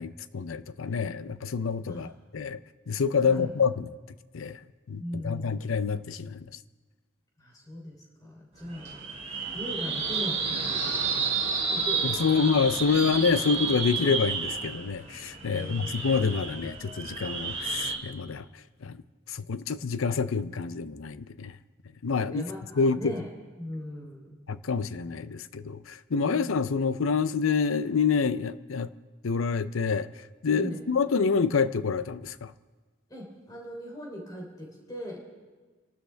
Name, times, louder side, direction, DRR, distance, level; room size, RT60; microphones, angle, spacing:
voice 1, 0.0-2.1 2.3-2.6 2.9-3.9 4.3-4.6 4.9-6.4 12.0-18.4 18.8-19.0 19.3-21.5 22.0-22.4 22.8-23.1 24.5-28.9 29.2-30.1 30.4-32.5, left 5 dB, 90° left, 14 dB, 0.6 m, -27 dB
voice 2, 3.2-3.5 5.0-5.7 7.4-9.0 9.3-11.4 11.7-12.5 15.5-15.9 22.1-23.3 23.6-24.3 26.3-26.5 30.5-30.8 33.1-35.3, left 1 dB, 20° left, -2 dB, 3.2 m, -39 dB
sound 1, 8.6-17.9, right 5 dB, 30° right, 2.5 m, -31 dB
29.5 x 12.5 x 3.4 m, 1.3 s
head